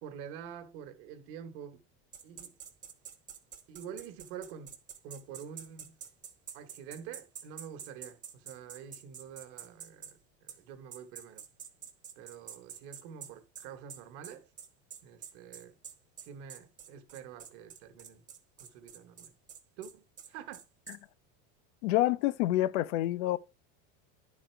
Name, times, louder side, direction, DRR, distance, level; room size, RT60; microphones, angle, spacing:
voice 1, 0.0-1.8 2.2-2.5 3.7-4.8 5.0-6.0 6.5-11.4 12.2-14.5 15.0-15.8 16.2-18.2 18.6-19.3 19.8-20.6, right 8 dB, 60° right, 1.2 m, -47 dB
sound 1, 2.1-10.1 10.5-10.6 10.9-21.0, right 8 dB, 20° right, 0.8 m, -47 dB
voice 2, 21.8-23.4, left 15 dB, 80° left, 0.7 m, -27 dB
10.5 x 4.3 x 4.4 m
cardioid pair, 175°, 35 cm